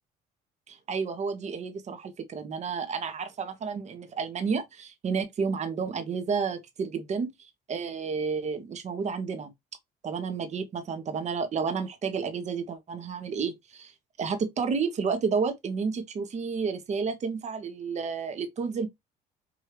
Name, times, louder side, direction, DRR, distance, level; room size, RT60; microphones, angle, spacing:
voice 1, 0.7-7.3 7.7-9.5 10.0-13.9 14.2-18.9, right 5 dB, 45° right, 1.1 m, -31 dB
5.0 x 2.7 x 3.0 m
cardioid pair, 110°, 17 cm